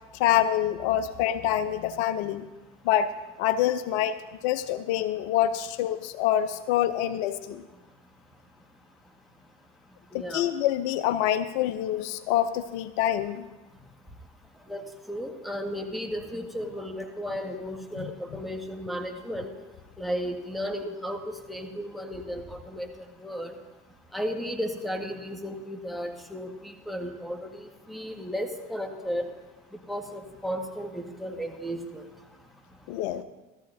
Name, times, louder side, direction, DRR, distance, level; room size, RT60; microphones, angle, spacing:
voice 1, 0.2-2.5 2.8-3.1 3.4-4.2 4.4-7.6 10.1-13.5 18.0-18.1 32.9-33.2, left 11 dB, 65° left, 12 dB, 0.7 m, -26 dB
voice 2, 10.1-10.4 14.7-14.8 15.1-19.5 20.0-22.9 23.2-23.5 24.1-29.2 29.9-32.0, equal, ahead, 4 dB, 1.6 m, -34 dB
16.5 x 13.5 x 2.7 m, 1.1 s
hypercardioid pair, 80°, 35 cm